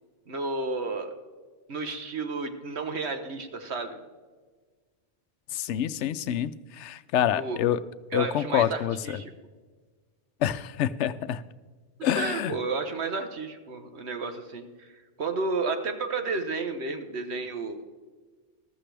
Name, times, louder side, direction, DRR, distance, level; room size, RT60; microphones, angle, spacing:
voice 1, 0.3-1.1 1.7-4.0 7.3-7.6 8.1-9.3 12.0-14.9 15.2-17.8, right 3 dB, 70° right, 7 dB, 1.4 m, -32 dB
voice 2, 5.5-7.8 8.1-9.2 10.4-11.4 12.0-12.5, left 10 dB, 80° left, 15 dB, 0.9 m, -27 dB
14.5 x 13.5 x 3.4 m, 1.4 s
omnidirectional pair, 1.2 m